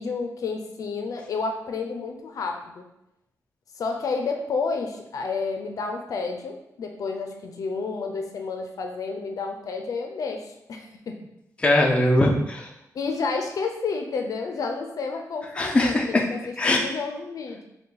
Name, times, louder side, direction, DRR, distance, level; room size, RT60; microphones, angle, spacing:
voice 1, 0.0-2.9 3.7-11.1 12.9-16.4 16.6-17.7, left 4 dB, 65° left, 4 dB, 0.5 m, -30 dB
voice 2, 11.6-12.7 15.6-16.3 16.6-16.8, left 1 dB, 20° left, 0 dB, 0.5 m, -21 dB
5.3 x 2.2 x 3.9 m, 0.85 s
wide cardioid pair, 155°, 6 cm